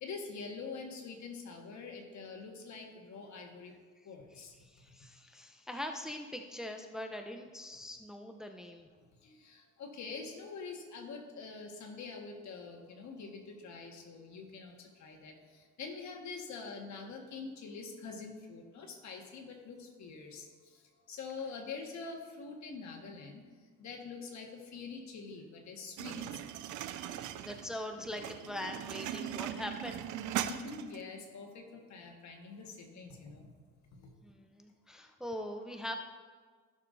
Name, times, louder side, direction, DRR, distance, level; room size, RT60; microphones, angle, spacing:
voice 1, 0.0-3.7 4.1-4.6 9.2-23.4 23.8-26.5 30.5-33.5 33.9-34.1, left 4 dB, 65° left, 2 dB, 1.6 m, -45 dB
voice 2, 4.3-8.9 27.0-30.1 34.2-35.9, left 1 dB, ahead, 4 dB, 0.7 m, -42 dB
sound 1, 26.0-31.0, right 11 dB, 80° right, 0.5 m, -39 dB
15.0 x 6.6 x 2.7 m, 1.5 s
cardioid pair, 90°, 30 cm